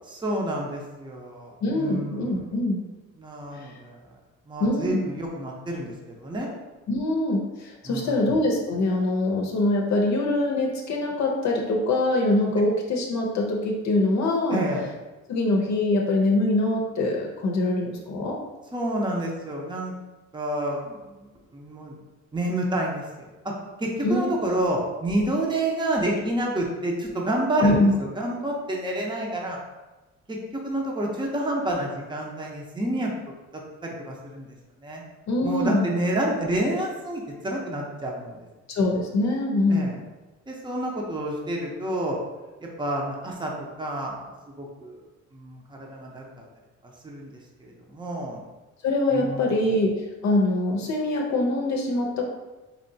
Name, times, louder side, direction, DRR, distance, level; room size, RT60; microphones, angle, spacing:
voice 1, 0.0-2.5 3.2-4.0 4.5-6.5 7.8-8.2 14.5-14.8 18.7-19.9 20.3-22.0 22.3-23.5 23.8-29.6 30.3-33.1 33.8-35.0 35.4-38.5 39.7-40.0 40.5-42.2 42.6-45.0 45.3-46.4 46.8-48.4 49.1-49.7, right 1 dB, 15° right, -1 dB, 0.7 m, -29 dB
voice 2, 1.6-2.8 3.5-3.7 4.6-5.0 6.9-14.6 15.3-18.4 24.0-24.4 27.6-27.9 35.3-35.9 38.7-39.9 48.8-49.9 50.2-52.3, left 2 dB, 65° left, 0 dB, 0.7 m, -23 dB
4.4 x 2.7 x 2.7 m, 1.1 s
cardioid pair, 90°, 30 cm